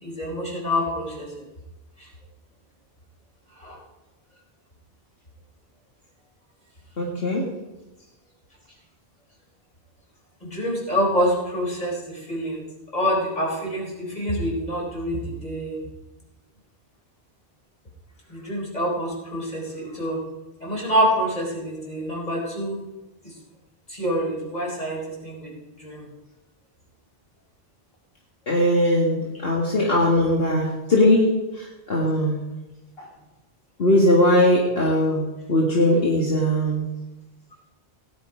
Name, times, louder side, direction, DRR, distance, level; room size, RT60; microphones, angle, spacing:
voice 1, 0.0-1.3 3.6-3.8 10.4-12.6 12.9-15.8 18.3-20.2 20.6-22.8 23.2-23.3 23.9-25.5 25.8-26.0, equal, 40° left, -2 dB, 4.2 m, -26 dB
voice 2, 7.0-7.5 28.5-31.3 31.6-32.4 33.8-36.9, left 1 dB, 65° left, -3 dB, 2.2 m, -20 dB
17.0 x 10.0 x 5.0 m, 1.0 s
omnidirectional pair, 1.1 m